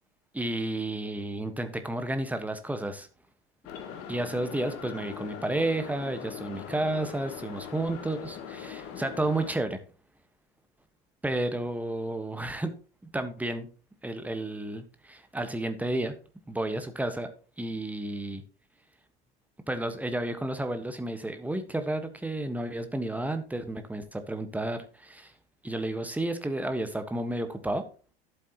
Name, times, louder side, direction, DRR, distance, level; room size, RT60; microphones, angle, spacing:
voice 1, 0.3-3.1 4.1-9.8 11.2-12.7 13.1-13.7 14.0-16.1 16.5-17.3 17.6-18.4 19.7-25.3 25.6-27.8, right 1 dB, 5° right, 8 dB, 1.3 m, -31 dB
sound 1, 3.6-9.5, left 8 dB, 45° left, 1.7 m, -41 dB
11.5 x 8.1 x 2.9 m, 0.39 s
figure-of-eight pair, 80°, 32 cm